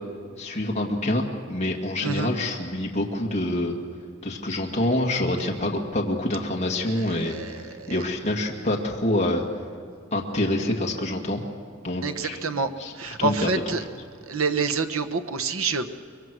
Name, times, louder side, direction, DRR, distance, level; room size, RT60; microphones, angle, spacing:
voice 1, 0.4-3.7 4.2-9.4 10.1-11.4 11.8-12.4 12.8-13.7, left 1 dB, 35° left, 0 dB, 2.1 m, -26 dB
voice 2, 6.9-8.0 12.0-13.8 14.3-15.9, right 4 dB, 80° right, 7 dB, 1.2 m, -28 dB
24.5 x 22.5 x 6.3 m, 2.1 s
head